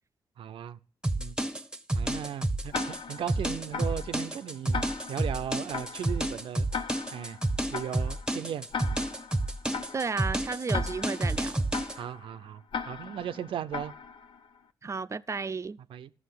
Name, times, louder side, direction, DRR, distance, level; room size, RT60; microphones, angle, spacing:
voice 1, 0.4-0.8 1.2-1.4 1.9-4.8 5.1-6.7 7.1-7.4 7.7-8.7 11.9-13.9 15.9-16.1, right 9 dB, 85° right, 0.5 m, -37 dB
sound 1, 1.0-12.0, right 1 dB, 10° right, 0.9 m, -30 dB
Tick-tock, 2.7-14.6, left 6 dB, 75° left, 0.7 m, -40 dB
voice 2, 9.9-11.6 14.8-15.8, right 4 dB, 35° right, 0.5 m, -33 dB
13.0 x 6.3 x 9.2 m
cardioid pair, 55°, 9 cm